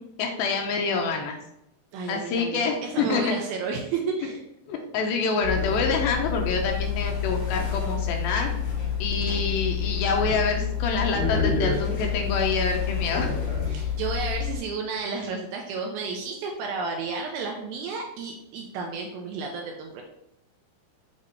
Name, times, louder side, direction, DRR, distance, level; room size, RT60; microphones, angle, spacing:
voice 1, 0.2-1.4 2.1-3.4 4.7-8.5 9.0-13.3, left 4 dB, 80° left, 2 dB, 2.2 m, -26 dB
voice 2, 1.9-4.4 13.6-20.0, right 4 dB, 80° right, 1 dB, 2.3 m, -32 dB
sound 1, 5.4-14.6, left 7 dB, 55° left, 3.2 m, -28 dB
7.4 x 2.9 x 4.4 m, 0.79 s
omnidirectional pair, 4.8 m